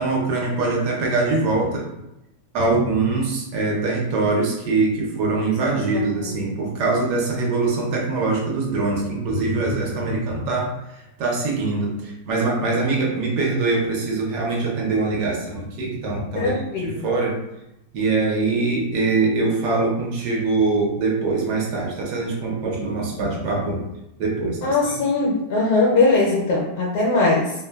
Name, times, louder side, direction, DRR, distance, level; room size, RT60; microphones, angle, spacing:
voice 1, 0.0-1.9 2.5-10.7 11.2-16.5 16.8-17.4 17.9-23.8 24.2-24.9, right 3 dB, 85° right, -2 dB, 1.3 m, -23 dB
voice 2, 16.3-17.1 24.6-27.5, left 3 dB, 75° left, -4 dB, 1.0 m, -20 dB
3.1 x 2.1 x 2.2 m, 0.90 s
omnidirectional pair, 1.8 m